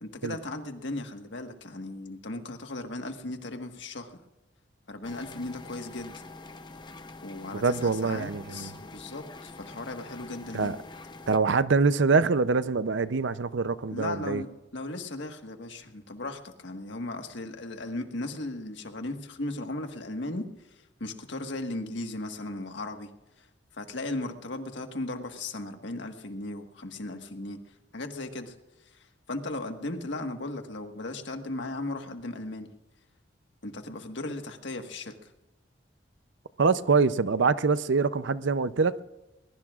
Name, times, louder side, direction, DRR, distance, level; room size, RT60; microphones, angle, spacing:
voice 1, 0.0-4.2 4.9-6.1 7.2-10.8 13.9-20.5 21.0-23.1 23.4-23.5 23.7-27.6 27.9-28.6 29.3-32.7 33.6-35.3, left 2 dB, 70° left, 1.6 m, -36 dB
sound 1, 5.0-11.4, left 3 dB, 25° left, 0.8 m, -46 dB
voice 2, 7.5-8.7 10.5-10.8 11.3-14.4 36.6-38.9, right 4 dB, 75° right, 0.6 m, -24 dB
22.0 x 21.0 x 2.5 m
head